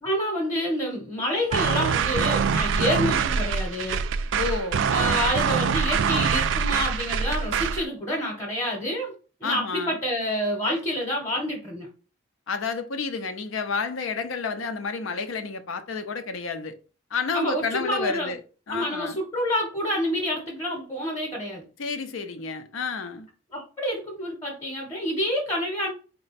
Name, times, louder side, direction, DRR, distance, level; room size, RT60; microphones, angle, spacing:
voice 1, 0.0-4.0 4.9-9.1 9.4-11.9 17.3-18.3 18.7-21.6 23.5-25.9, equal, 15° left, 0.8 m, -28 dB
sound 1, 1.5-7.9, right 6 dB, 75° right, 0.3 m, -24 dB
voice 2, 4.3-4.8 9.4-10.0 12.5-16.8 17.1-18.4 18.7-19.2 21.8-23.3, left 5 dB, 90° left, 0.6 m, -30 dB
4.2 x 2.2 x 4.0 m
head